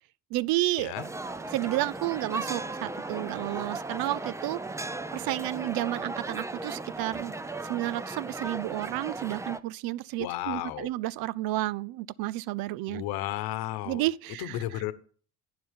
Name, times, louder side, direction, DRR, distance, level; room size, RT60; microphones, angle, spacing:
voice 1, 0.3-0.9 1.5-4.6 5.1-7.3 7.7-13.0 13.9-14.8, right 17 dB, 70° right, 0.5 m, -31 dB
sound 1, 0.9-9.6, right 2 dB, 10° right, 0.5 m, -36 dB
voice 2, 10.2-10.9 12.9-14.0 14.4-14.9, left 14 dB, 75° left, 1.2 m, -33 dB
11.5 x 8.7 x 3.7 m
cardioid pair, 110°, 38 cm